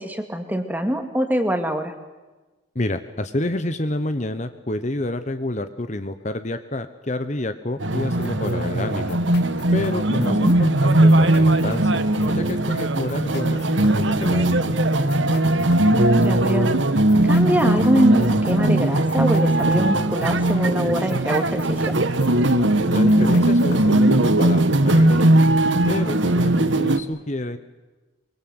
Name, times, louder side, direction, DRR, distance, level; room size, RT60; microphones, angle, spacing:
voice 1, 0.0-1.9 10.2-10.6 15.9-22.0, equal, 10° right, 6 dB, 2.3 m, -24 dB
voice 2, 2.7-9.2 9.7-12.0 12.3-14.8 22.9-25.3 25.9-27.6, left 1 dB, 35° left, 9 dB, 1.1 m, -28 dB
sound 1, 7.8-27.0, right 1 dB, 70° right, 1.4 m, -19 dB
sound 2, 8.2-24.1, left 2 dB, 55° left, 2.7 m, -40 dB
24.5 x 23.5 x 8.1 m, 1.2 s
head